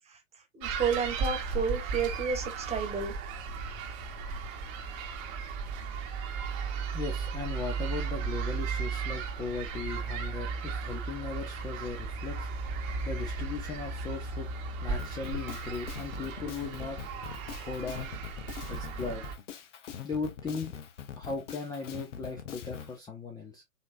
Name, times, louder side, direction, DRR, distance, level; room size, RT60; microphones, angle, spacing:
voice 1, 0.6-3.1, right 6 dB, 15° right, 1.4 m, -31 dB
sound 1, 0.6-19.3, right 4 dB, 35° right, 1.2 m, -35 dB
voice 2, 6.9-17.0 17.5-18.1 18.7-19.3 20.0-20.7 21.2-23.6, left 4 dB, 10° left, 0.7 m, -38 dB
Drum kit, 15.0-22.9, left 9 dB, 60° left, 1.1 m, -43 dB
5.7 x 2.9 x 2.6 m
hypercardioid pair, 115°, 41 cm